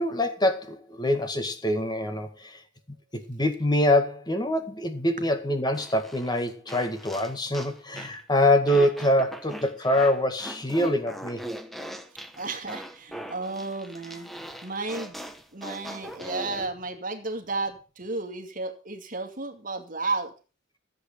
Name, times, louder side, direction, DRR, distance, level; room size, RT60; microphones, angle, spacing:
voice 1, 0.0-2.6 3.1-11.4, left 1 dB, 20° left, 1.9 m, -25 dB
sound 1, 5.7-8.2 8.7-16.7, equal, ahead, 1.1 m, -40 dB
voice 2, 12.4-15.2 15.5-20.3, right 3 dB, 45° right, 2.2 m, -33 dB
14.0 x 8.1 x 6.6 m
head